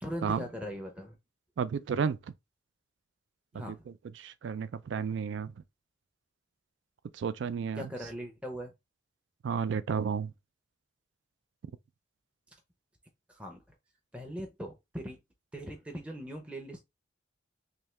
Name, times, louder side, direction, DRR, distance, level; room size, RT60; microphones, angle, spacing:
voice 1, 0.0-1.2 3.5-3.9 7.8-8.7 13.3-13.8 14.1-15.2 15.5-16.8, equal, 5° right, 0.6 m, -40 dB
voice 2, 1.6-2.3 3.7-3.8 4.2-5.5 7.1-7.9 9.4-10.3, right 6 dB, 75° right, 0.3 m, -32 dB
3.4 x 2.7 x 3.1 m
head